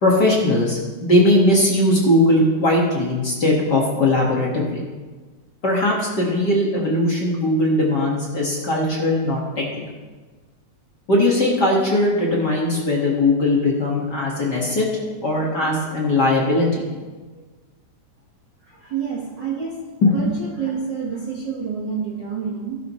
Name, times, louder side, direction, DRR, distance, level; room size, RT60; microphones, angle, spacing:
voice 1, 0.0-4.8 5.6-9.6 11.1-14.9 15.2-16.9 20.0-20.1, left 1 dB, 40° left, -3 dB, 1.9 m, -19 dB
voice 2, 18.6-19.8 20.1-22.8, right 6 dB, 50° right, -4 dB, 1.4 m, -28 dB
17.0 x 11.0 x 3.1 m, 1.3 s
omnidirectional pair, 3.6 m